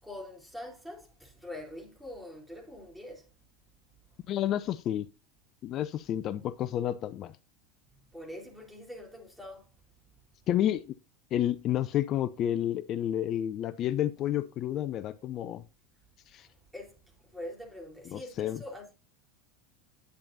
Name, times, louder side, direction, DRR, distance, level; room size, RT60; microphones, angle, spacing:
voice 1, 0.0-3.3 8.1-9.7 16.4-18.9, left 1 dB, 5° right, 3.7 m, -44 dB
voice 2, 4.3-5.1 5.6-7.4 10.5-10.9 11.3-15.6 16.3-16.5 18.1-18.6, left 11 dB, 40° left, 0.4 m, -30 dB
10.5 x 8.8 x 2.6 m
figure-of-eight pair, 80°, 0 cm